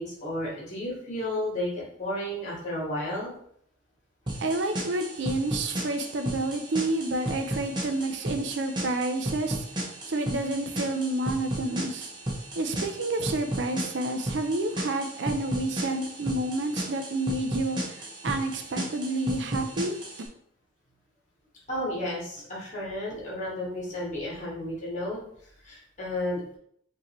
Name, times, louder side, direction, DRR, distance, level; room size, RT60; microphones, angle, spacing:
voice 1, 0.0-3.3 21.7-25.2 25.6-26.4, left 1 dB, 35° left, -5 dB, 1.6 m, -32 dB
sound 1, 4.3-20.3, right 1 dB, 20° right, 0.7 m, -34 dB
voice 2, 4.4-9.7 10.1-12.1 12.6-19.9, right 2 dB, 65° right, 6 dB, 0.5 m, -29 dB
5.0 x 2.8 x 3.0 m, 0.67 s
head